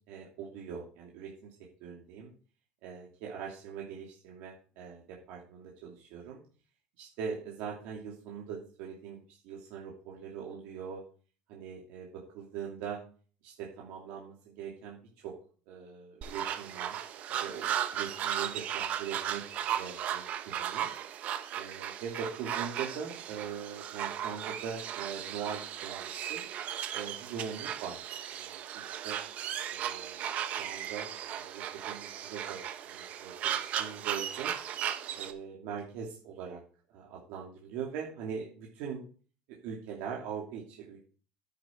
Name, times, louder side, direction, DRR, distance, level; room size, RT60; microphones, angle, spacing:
voice 1, 0.1-1.5 1.8-2.3 2.8-6.4 7.0-11.0 11.5-13.0 13.4-15.4 15.7-17.1 17.4-19.5 19.7-20.9 21.5-26.4 26.9-28.0 28.3-29.2 29.7-34.5 35.1-36.6 36.9-39.0 39.5-41.0, right 7 dB, 70° right, -2 dB, 2.8 m, -42 dB
sound 1, 16.2-35.3, right 10 dB, 45° right, 1.1 m, -36 dB
9.9 x 9.5 x 4.6 m, 0.40 s
cardioid pair, 150°, 3 cm